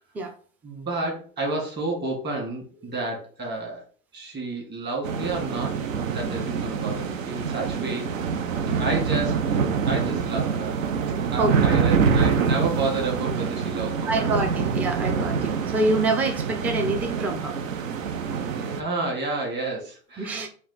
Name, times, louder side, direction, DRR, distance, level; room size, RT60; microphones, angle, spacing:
voice 1, 0.6-3.8 4.1-5.7 6.0-8.1 8.8-9.3 9.8-10.8 11.3-14.5 16.6-16.7 18.5-20.5, right 2 dB, 25° right, 0 dB, 1.9 m, -30 dB
sound 1, 5.0-18.8, right 6 dB, 80° right, 0.7 m, -25 dB
voice 2, 14.0-17.6 20.2-20.5, right 2 dB, 5° right, 5 dB, 0.3 m, -26 dB
4.2 x 2.5 x 3.9 m, 0.43 s
hypercardioid pair, 95°, 39 cm